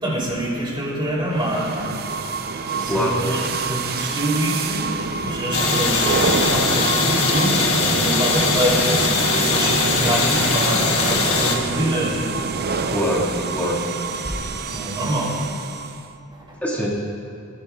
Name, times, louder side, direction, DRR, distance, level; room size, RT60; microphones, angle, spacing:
voice 1, 0.0-2.0 2.8-4.8 5.2-12.5 14.2-15.4, right 1 dB, 25° right, -4 dB, 3.0 m, -26 dB
sound 1, 1.3-16.1, right 4 dB, 50° right, 0.5 m, -26 dB
sound 2, 5.5-11.6, left 4 dB, 75° left, 1.4 m, -21 dB
voice 2, 12.9-13.8 16.6-16.9, equal, 5° left, -6 dB, 1.8 m, -23 dB
19.5 x 11.0 x 2.3 m, 2.7 s
head